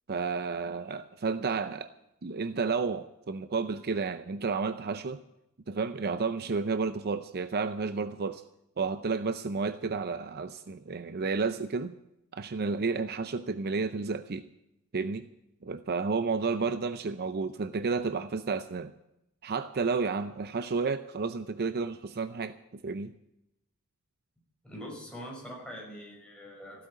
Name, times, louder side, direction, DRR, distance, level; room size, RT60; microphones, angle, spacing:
voice 1, 0.1-1.9 2.2-5.2 5.7-8.4 8.8-12.0 12.3-14.5 14.9-15.3 15.6-18.9 19.4-23.1, right 4 dB, 45° right, 12 dB, 0.6 m, -31 dB
voice 2, 24.6-26.9, equal, 5° left, -3 dB, 5.8 m, -43 dB
15.5 x 8.4 x 9.9 m, 0.86 s
head